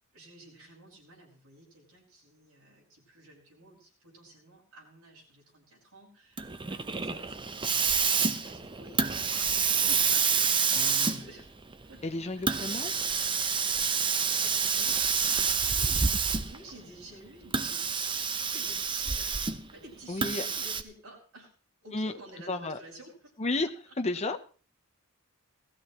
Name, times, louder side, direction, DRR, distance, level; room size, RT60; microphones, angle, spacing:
voice 1, 0.1-11.5 11.8-12.0 12.5-12.7 13.9-17.8 18.4-19.4 19.7-21.5 21.8-23.3 23.9-24.0, right 1 dB, 75° right, -3 dB, 5.9 m, -52 dB
Hiss, 6.4-16.7 17.4-19.7 20.2-20.8, right 5 dB, 25° right, 0.7 m, -28 dB
voice 2, 10.7-11.3 12.0-12.9 20.1-20.5 21.9-22.1 22.5-22.8 23.4-23.7 24.0-24.4, left 2 dB, 30° left, 6 dB, 0.9 m, -32 dB
18.5 x 14.0 x 3.0 m, 0.37 s
head